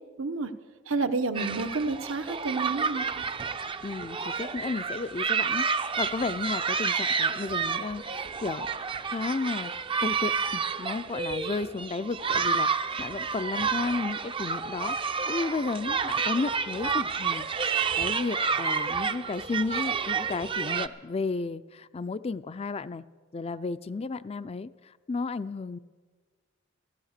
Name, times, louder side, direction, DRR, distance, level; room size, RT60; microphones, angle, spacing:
voice 1, 0.2-0.5 0.9-3.2, right 3 dB, 80° right, 8 dB, 1.0 m, -30 dB
sound 1, 1.3-20.9, right 5 dB, 25° right, 0.5 m, -30 dB
voice 2, 3.8-9.7 10.0-23.0 23.3-25.8, left 3 dB, 30° left, 15 dB, 0.4 m, -33 dB
14.5 x 14.0 x 6.6 m, 1.4 s
head